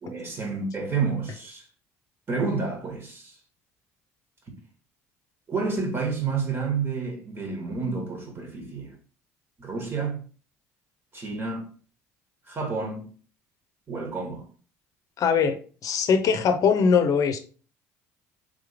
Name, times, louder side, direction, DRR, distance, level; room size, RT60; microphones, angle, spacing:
voice 1, 0.0-1.6 2.3-3.3 5.5-8.9 9.6-10.2 11.1-11.6 12.5-13.0 13.9-14.4, right 4 dB, 30° right, 1.9 m, -29 dB
voice 2, 15.2-15.6 15.8-17.4, left 6 dB, 50° left, 0.6 m, -21 dB
3.7 x 3.3 x 3.5 m
hypercardioid pair, 70°, 7 cm